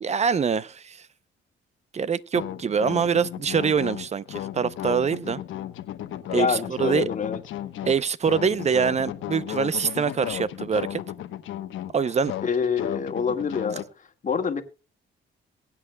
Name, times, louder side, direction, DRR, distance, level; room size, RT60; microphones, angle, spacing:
voice 1, 0.0-1.0 1.9-5.4 6.3-7.1 7.8-11.0 11.9-12.3, right 6 dB, 35° right, 0.6 m, -24 dB
sound 1, 2.3-13.8, left 12 dB, 80° left, 1.1 m, -35 dB
voice 2, 6.3-7.4 12.4-14.6, left 6 dB, 40° left, 1.8 m, -26 dB
23.0 x 8.5 x 2.3 m
cardioid pair, 90°, 20 cm